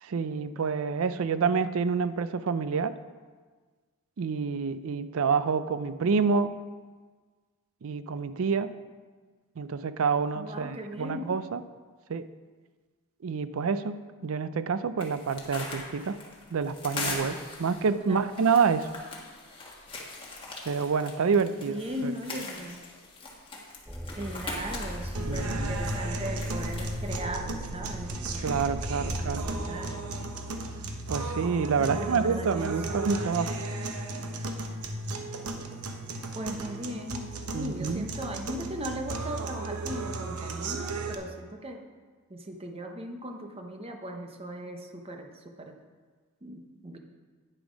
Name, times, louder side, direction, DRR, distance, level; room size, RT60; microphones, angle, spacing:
voice 1, 0.0-3.0 4.2-6.5 7.8-8.7 9.6-11.6 12.1-12.3 13.2-16.2 16.5-18.9 20.7-22.1 25.3-25.8 28.4-29.5 31.1-33.6 37.5-38.1, right 5 dB, 65° right, 13 dB, 0.4 m, -28 dB
voice 2, 10.4-11.3 18.0-18.2 21.5-22.8 24.2-28.6 29.0-30.2 31.8-32.8 36.3-41.9 42.3-45.8 46.4-47.0, right 1 dB, 25° right, 4 dB, 0.8 m, -38 dB
sound 1, 15.0-27.2, left 3 dB, 25° left, 1.4 m, -41 dB
sound 2, 23.9-29.8, equal, ahead, 0.4 m, -37 dB
sound 3, 25.1-41.1, right 2 dB, 90° right, 0.8 m, -35 dB
9.3 x 6.9 x 5.1 m, 1.5 s
head